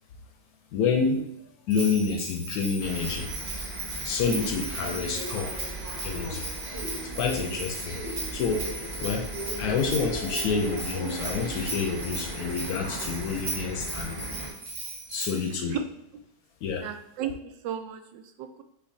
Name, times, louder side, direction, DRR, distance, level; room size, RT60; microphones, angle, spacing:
voice 1, 0.7-1.3 1.7-3.4 4.0-5.6 6.0-6.4 7.0-8.0 8.3-8.7 9.0-9.3 9.6-14.2 15.1-15.8 16.6-16.9, left 5 dB, 70° left, 4 dB, 0.9 m, -28 dB
Bell, 1.7-15.5, right 2 dB, 70° right, 1.7 m, -37 dB
sound 1, 2.8-14.5, right 1 dB, 15° right, 0.9 m, -37 dB
voice 2, 16.8-18.6, right 7 dB, 90° right, 8 dB, 1.2 m, -34 dB
6.5 x 2.8 x 2.6 m, 0.81 s
omnidirectional pair, 1.9 m